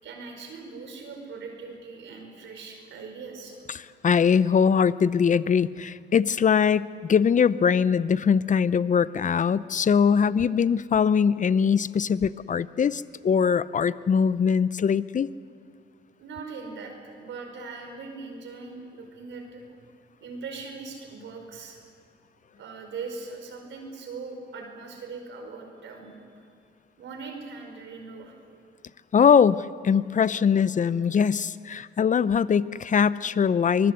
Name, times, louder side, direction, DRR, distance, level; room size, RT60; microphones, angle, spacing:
voice 1, 0.0-3.6 16.2-19.6 20.2-21.8 22.6-26.5 27.0-28.3, right 4 dB, 80° right, 3 dB, 4.9 m, -40 dB
voice 2, 3.7-15.3 29.1-33.9, left 7 dB, 40° left, 17 dB, 0.7 m, -22 dB
24.0 x 20.5 x 8.2 m, 2.2 s
cardioid pair, 85°, 19 cm